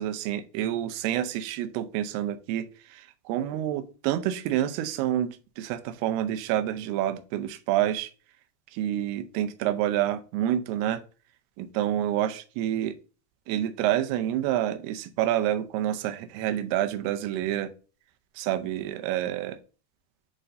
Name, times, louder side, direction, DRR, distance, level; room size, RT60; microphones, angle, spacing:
voice 1, 0.0-8.1 8.7-11.0 11.6-12.9 13.5-17.7 18.4-19.6, right 12 dB, 80° right, 2.5 m, -28 dB
8.7 x 4.4 x 2.6 m
omnidirectional pair, 5.0 m